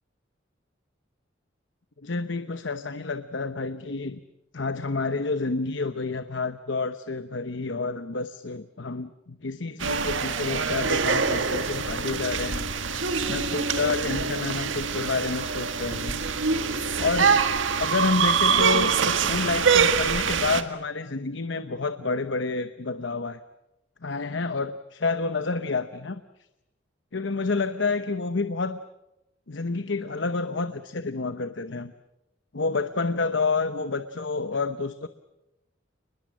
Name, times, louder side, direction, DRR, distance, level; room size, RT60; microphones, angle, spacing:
voice 1, 2.0-4.2 4.5-13.0 13.3-16.2 17.0-17.4 17.8-23.4 24.0-26.2 27.1-28.8 29.5-31.9 32.5-35.1, left 3 dB, 70° left, 11 dB, 1.0 m, -29 dB
sound 1, 9.8-20.6, right 5 dB, 85° right, 1.8 m, -24 dB
29.0 x 21.5 x 7.5 m, 0.91 s
head